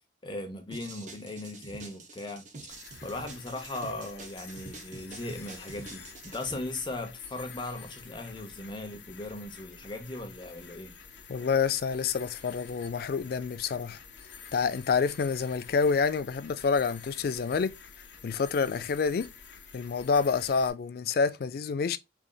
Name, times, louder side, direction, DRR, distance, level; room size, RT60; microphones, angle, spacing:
voice 1, 0.2-10.9, left 2 dB, 25° left, 0.8 m, -38 dB
sound 1, 0.7-6.6, right 3 dB, 40° right, 0.7 m, -46 dB
sound 2, 2.7-20.7, left 6 dB, 85° left, 0.8 m, -49 dB
voice 2, 11.3-14.0 14.5-17.7 18.2-19.3 19.7-22.0, left 5 dB, 55° left, 0.3 m, -28 dB
3.8 x 3.4 x 2.2 m
head